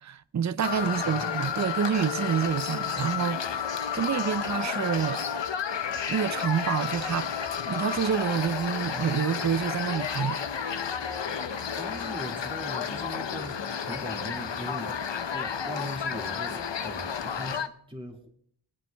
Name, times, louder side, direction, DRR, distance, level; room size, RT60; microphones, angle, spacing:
voice 1, 0.0-3.6 3.9-5.2 6.1-7.3 7.7-10.4, right 8 dB, 40° right, 0.5 m, -28 dB
sound 1, 0.6-17.7, left 7 dB, 80° left, 0.7 m, -31 dB
voice 2, 11.5-15.0 15.3-18.3, equal, 10° right, 2.0 m, -40 dB
20.5 x 9.1 x 3.4 m
wide cardioid pair, 40°, 43 cm